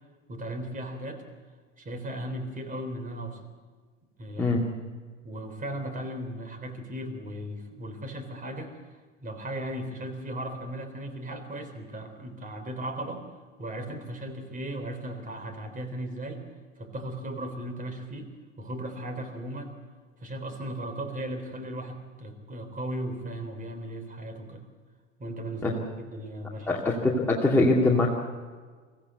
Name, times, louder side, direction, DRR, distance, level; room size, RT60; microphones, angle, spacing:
voice 1, 0.3-1.2 1.8-3.5 4.2-4.6 5.2-8.8 9.2-13.3 13.6-16.5 16.8-18.3 18.6-19.7 20.2-24.6 25.2-26.8 27.1-27.2, right 1 dB, 20° right, 6 dB, 3.6 m, -36 dB
voice 2, 26.7-28.1, left 2 dB, 5° left, -4 dB, 2.4 m, -23 dB
23.5 x 15.5 x 8.2 m, 1.5 s
figure-of-eight pair, 85°, 38 cm